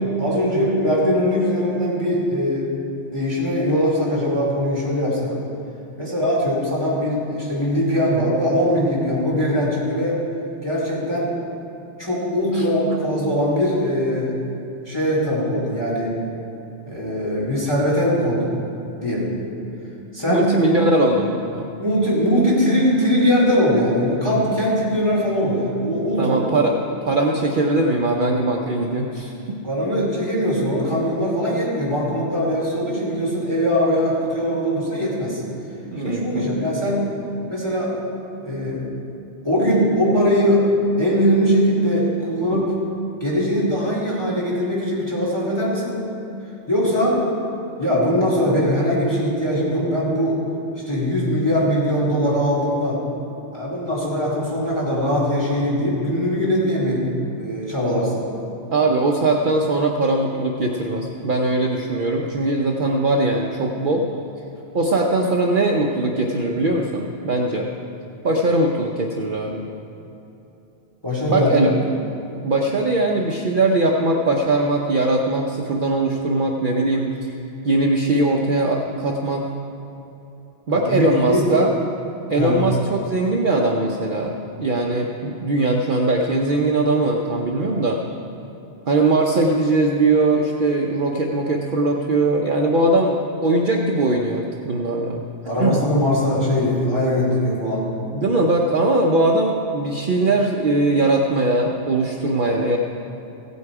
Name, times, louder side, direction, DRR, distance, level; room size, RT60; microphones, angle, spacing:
voice 1, 0.2-2.7 3.1-5.3 6.0-10.2 10.6-11.3 12.0-14.3 14.8-16.2 16.9-18.5 19.0-19.3 20.1-20.5 21.8-26.4 29.6-35.4 36.0-37.1 37.5-37.9 38.4-38.9 39.4-40.7 41.0-42.7 43.2-46.0 46.7-47.2 47.8-50.4 50.9-53.0 53.5-57.1 57.4-58.2 71.0-71.7 80.7-81.5 82.4-82.6 95.4-98.0, equal, 20° left, -6 dB, 2.4 m, -21 dB
voice 2, 20.3-21.7 26.2-26.7 27.0-29.6 35.8-36.5 42.5-42.6 58.7-64.1 64.7-67.7 68.2-69.7 71.3-71.7 72.4-77.4 77.6-79.5 80.7-81.7 82.3-84.3 84.6-88.0 88.9-95.2 95.6-95.8 98.1-102.8, right 2 dB, 50° right, 0 dB, 0.8 m, -20 dB
16.0 x 8.3 x 4.8 m, 2.9 s
omnidirectional pair, 1.2 m